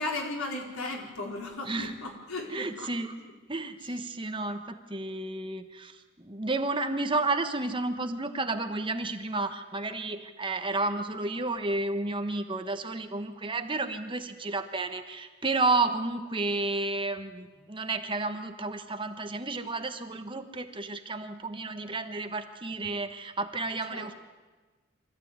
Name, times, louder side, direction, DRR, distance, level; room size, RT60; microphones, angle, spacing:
voice 1, 0.0-2.9 3.2-3.3 3.8-3.9 23.9-24.1, left 2 dB, 85° left, 0 dB, 4.6 m, -36 dB
voice 2, 2.5-3.1 3.5-24.1, right 2 dB, 25° right, 7 dB, 1.2 m, -31 dB
24.5 x 14.5 x 9.5 m, 1.3 s
head